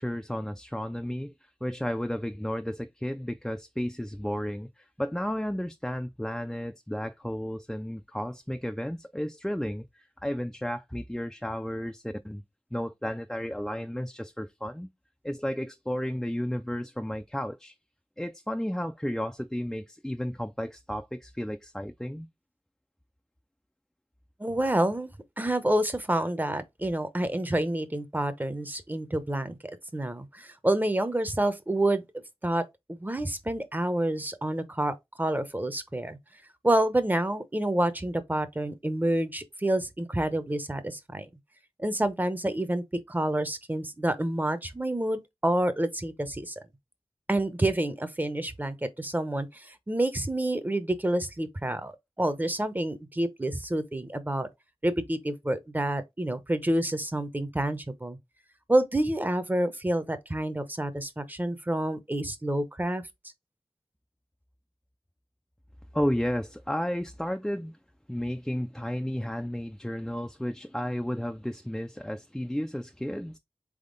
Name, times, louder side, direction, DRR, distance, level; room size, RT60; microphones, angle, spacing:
voice 1, 0.0-1.3 1.6-12.4 12.7-14.9 15.2-17.7 18.2-22.3 65.9-67.7 68.1-73.4, equal, 5° left, 0.3 m, -33 dB
voice 2, 24.4-25.1 25.4-32.1 32.4-32.6 32.9-36.2 36.6-41.3 41.8-46.5 47.3-51.9 52.2-54.5 54.8-58.2 58.7-63.0, right 1 dB, 20° right, 0.7 m, -28 dB
3.8 x 3.6 x 3.8 m
wide cardioid pair, 75°, 10 cm